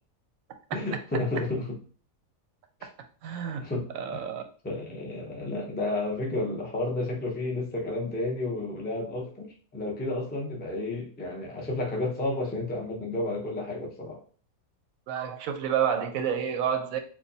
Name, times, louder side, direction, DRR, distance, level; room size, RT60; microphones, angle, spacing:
voice 1, 0.7-1.8 3.6-4.2 4.6-14.2, left 2 dB, 10° left, -1 dB, 0.4 m, -31 dB
voice 2, 3.2-3.6 3.9-4.4 15.1-17.0, right 8 dB, 70° right, 6 dB, 1.0 m, -29 dB
4.6 x 2.2 x 2.7 m, 0.41 s
omnidirectional pair, 1.6 m